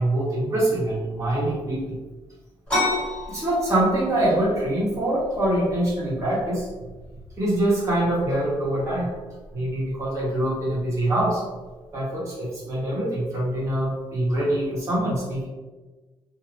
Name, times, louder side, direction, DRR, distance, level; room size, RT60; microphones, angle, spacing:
voice 1, 0.0-2.0 3.3-6.7 7.4-9.1 9.5-11.4 11.9-15.5, right 1 dB, 30° right, -7 dB, 1.0 m, -24 dB
sound 1, 2.7-12.1, left 2 dB, 10° left, 1.3 m, -34 dB
2.6 x 2.4 x 3.2 m, 1.2 s
wide cardioid pair, 175°, 10 cm